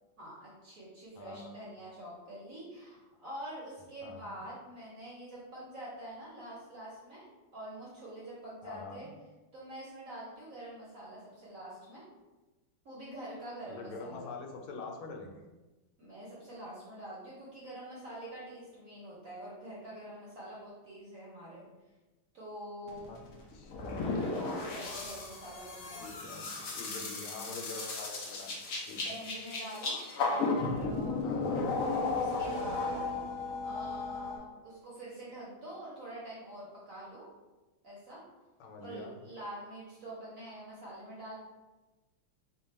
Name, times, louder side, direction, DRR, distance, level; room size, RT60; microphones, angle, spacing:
voice 1, 0.2-9.1 9.5-12.0 12.8-14.3 16.0-21.6 22.3-23.1 24.3-26.1 29.0-31.2 32.2-37.3 37.8-38.2 38.8-41.3, right 1 dB, 55° right, -6 dB, 1.0 m, -46 dB
voice 2, 1.1-1.6 4.0-4.4 8.6-9.1 13.7-15.5 23.1-23.2 23.5-24.3 26.0-26.5 26.8-29.2 31.2-31.7 38.6-39.2, left 3 dB, 90° left, 1 dB, 1.5 m, -45 dB
sound 1, 22.9-34.4, left 3 dB, 70° left, 0.8 m, -35 dB
3.4 x 2.3 x 4.0 m, 1.1 s
omnidirectional pair, 2.3 m